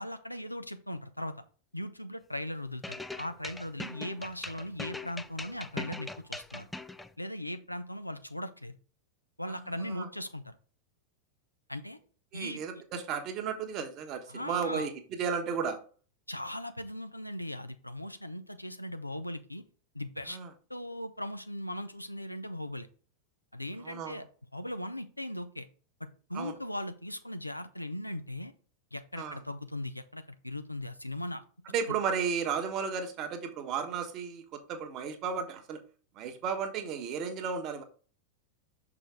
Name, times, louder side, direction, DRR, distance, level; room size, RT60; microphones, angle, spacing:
voice 1, 0.0-1.3 1.7-6.7 7.2-8.8 9.4-10.5 11.7-12.0 12.3-12.6 14.3-14.9 16.3-19.6 19.9-20.4 20.7-22.9 23.5-24.2 24.5-25.7 26.0-28.5 28.9-31.4 31.9-32.0, left 1 dB, 85° left, 10 dB, 0.6 m, -38 dB
sound 1, 2.8-7.1, left 2 dB, 5° left, 0.4 m, -41 dB
voice 2, 9.5-10.1 12.3-15.8 20.3-20.5 23.8-24.2 26.3-26.6 29.2-29.4 31.7-35.8 36.2-37.8, right 6 dB, 35° right, 5 dB, 1.2 m, -34 dB
6.3 x 4.9 x 3.5 m, 0.39 s
figure-of-eight pair, 90°, 0 cm